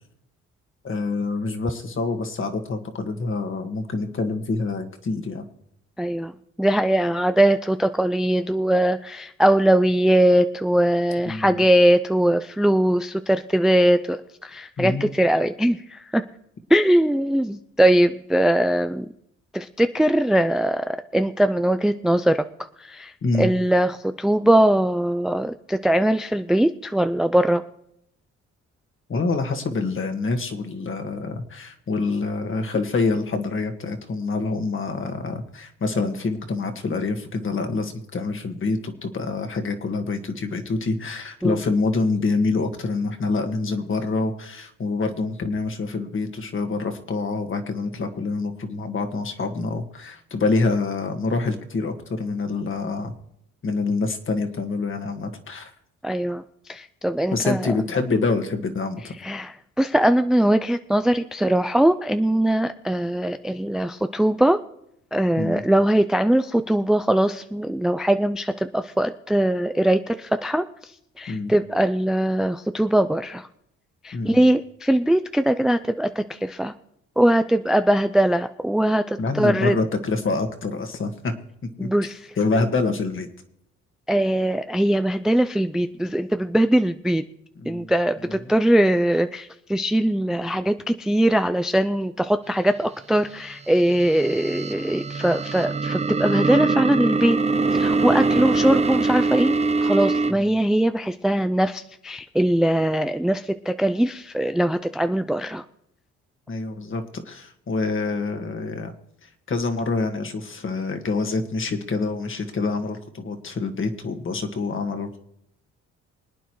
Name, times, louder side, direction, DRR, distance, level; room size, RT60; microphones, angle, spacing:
voice 1, 0.8-5.4 11.3-11.6 14.8-15.1 23.2-23.5 29.1-53.1 53.6-55.7 57.3-59.1 65.4-65.6 71.3-71.5 74.1-74.4 79.2-81.3 81.8-81.9 82.4-83.3 87.6-87.9 88.3-88.4 98.3-98.4 100.3-100.5 106.5-108.9 109.2-115.2, left 3 dB, 40° left, 5 dB, 1.7 m, -26 dB
voice 2, 6.0-6.3 6.6-16.2 16.7-19.1 19.5-22.5 22.8-27.6 41.4-41.6 56.0-57.7 59.2-64.6 65.1-70.9 71.2-73.5 74.0-76.7 77.2-79.7 81.8-82.3 84.1-87.2 87.7-97.4 97.7-105.6, right 1 dB, ahead, 10 dB, 0.4 m, -21 dB
sound 1, 93.8-100.3, right 3 dB, 20° right, 0.7 m, -23 dB
24.5 x 9.2 x 3.1 m, 0.76 s
cardioid pair, 90°, 30 cm